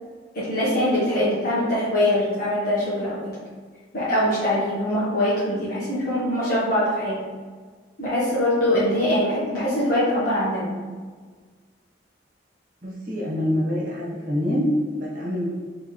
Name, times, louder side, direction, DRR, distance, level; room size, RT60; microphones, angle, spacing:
voice 1, 0.3-3.3 3.9-7.2 8.0-10.7, left 1 dB, 55° left, -11 dB, 1.4 m, -23 dB
voice 2, 12.8-14.7 14.9-15.5, left 1 dB, 50° right, -6 dB, 1.4 m, -26 dB
3.5 x 3.3 x 4.4 m, 1.5 s
head